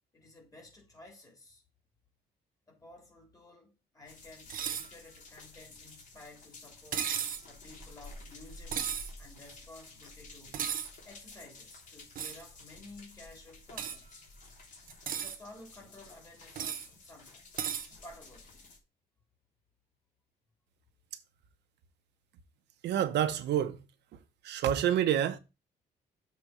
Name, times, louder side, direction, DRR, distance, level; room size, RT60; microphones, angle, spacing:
voice 1, 0.1-1.6 2.7-7.2 7.4-8.8 9.2-10.7 11.0-14.2 15.1-18.7, left 2 dB, 20° left, 3.3 m, -53 dB
sound 1, 4.1-18.8, left 2 dB, 50° left, 3.3 m, -52 dB
sound 2, 4.5-4.9 6.9-7.4 8.7-9.1 10.5-10.9 12.2-12.4 13.8-14.0 14.9-15.4 16.6-16.9 17.6-17.9, right 8 dB, 55° right, 1.1 m, -34 dB
voice 2, 22.8-23.8 24.4-25.4, right 10 dB, 75° right, 0.9 m, -28 dB
7.0 x 4.1 x 6.2 m
cardioid pair, 145°, 18 cm